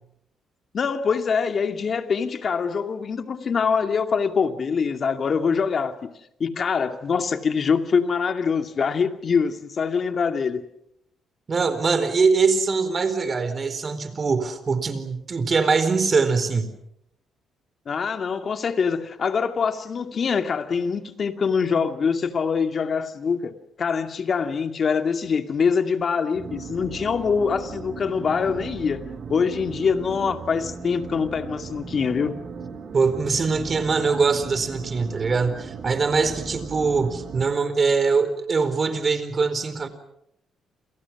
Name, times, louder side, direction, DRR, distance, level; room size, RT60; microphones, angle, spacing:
voice 1, 0.7-6.1 6.4-10.6 17.9-32.3, left 6 dB, 50° left, 2.4 m, -24 dB
voice 2, 11.5-16.7 32.9-39.9, right 4 dB, 40° right, 4.4 m, -22 dB
sound 1, 26.3-37.4, right 5 dB, 55° right, 3.8 m, -37 dB
29.0 x 28.5 x 6.1 m
cardioid pair, 90°, 0 cm